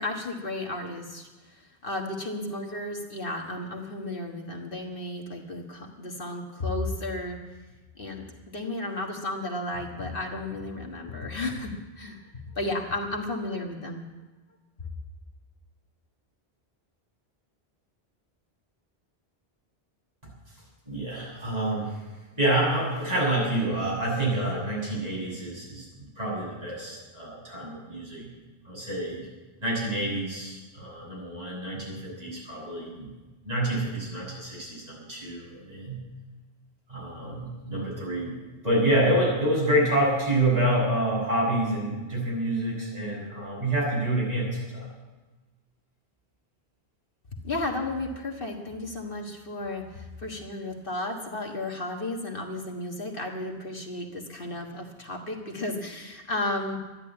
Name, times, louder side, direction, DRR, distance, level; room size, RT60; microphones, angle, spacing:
voice 1, 0.0-7.4 8.0-12.2 12.6-14.0 47.4-56.8, left 2 dB, 60° left, 1 dB, 1.7 m, -33 dB
voice 2, 20.9-21.9 22.4-28.3 28.6-29.3 29.6-33.1 33.4-36.0 36.9-38.4 38.6-44.9, right 1 dB, 40° right, -5 dB, 6.9 m, -27 dB
13.0 x 10.5 x 8.7 m, 1.2 s
omnidirectional pair, 1.1 m